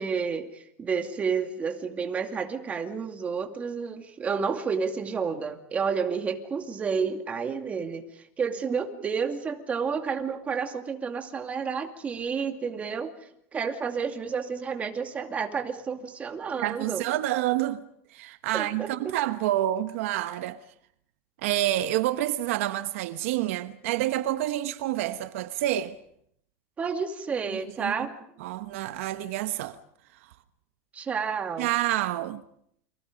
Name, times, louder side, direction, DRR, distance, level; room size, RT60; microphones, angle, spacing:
voice 1, 0.0-13.1 13.5-17.0 18.5-18.9 26.8-28.1 30.9-31.7, right 5 dB, 20° right, 2.4 m, -30 dB
voice 2, 16.6-17.8 18.1-20.6 21.4-26.0 27.8-27.9 28.4-29.8 31.6-32.4, right 14 dB, 70° right, 1.1 m, -28 dB
30.0 x 25.0 x 5.2 m
supercardioid pair, 155°, 8 cm